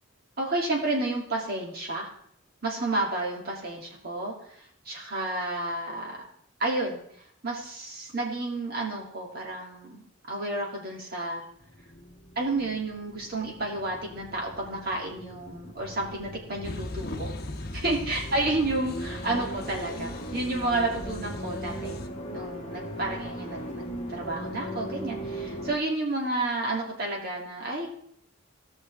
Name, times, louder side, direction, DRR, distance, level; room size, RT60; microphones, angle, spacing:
voice 1, 0.4-2.1 2.6-4.6 4.8-6.2 6.6-7.0 7.4-11.4 12.4-17.3 17.7-22.0 22.3-27.9, right 2 dB, 50° right, -2 dB, 2.8 m, -31 dB
sound 1, 11.6-25.8, equal, 30° left, 1.4 m, -39 dB
sound 2, 16.6-22.1, left 2 dB, 50° left, 0.9 m, -39 dB
17.5 x 6.2 x 3.5 m, 0.67 s
head